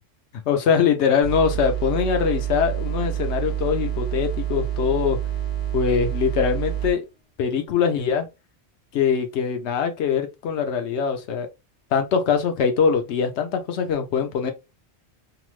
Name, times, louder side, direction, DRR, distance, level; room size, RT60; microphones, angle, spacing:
voice 1, 0.5-5.2 5.7-7.0 7.4-8.3 8.9-11.5 11.9-14.5, left 7 dB, 85° left, 0.9 m, -22 dB
sound 1, 1.2-6.9, right 11 dB, 70° left, 1.2 m, -27 dB
2.9 x 2.0 x 3.0 m
omnidirectional pair, 1.1 m